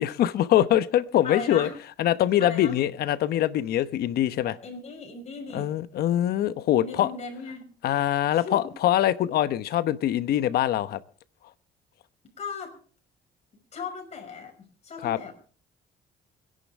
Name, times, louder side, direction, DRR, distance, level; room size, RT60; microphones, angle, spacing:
voice 1, 0.0-1.7 2.0-4.6 5.5-7.1 7.8-11.0 15.0-15.2, left 12 dB, 65° left, 1.0 m, -23 dB
voice 2, 1.2-1.8 2.4-2.8 4.4-5.7 6.8-7.7 8.3-8.7 12.4-12.8 13.7-15.3, left 5 dB, 40° left, 5.6 m, -37 dB
25.5 x 11.0 x 3.6 m
cardioid pair, 110°, 17 cm